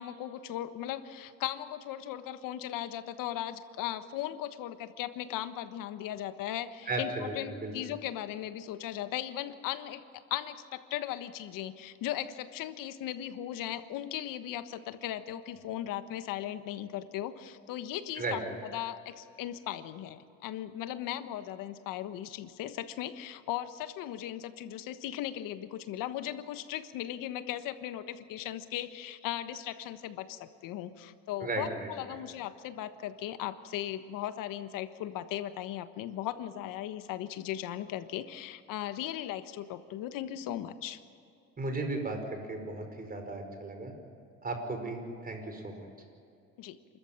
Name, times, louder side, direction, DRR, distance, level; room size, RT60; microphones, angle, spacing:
voice 1, 0.0-10.0 10.3-41.0 46.6-46.8, left 12 dB, 75° left, 11 dB, 1.3 m, -37 dB
voice 2, 6.9-7.7 18.2-18.4 31.4-31.9 41.6-43.9 44.4-45.9, right 2 dB, 25° right, 4 dB, 5.2 m, -35 dB
28.5 x 14.0 x 8.8 m, 2.5 s
supercardioid pair, 95°, 33 cm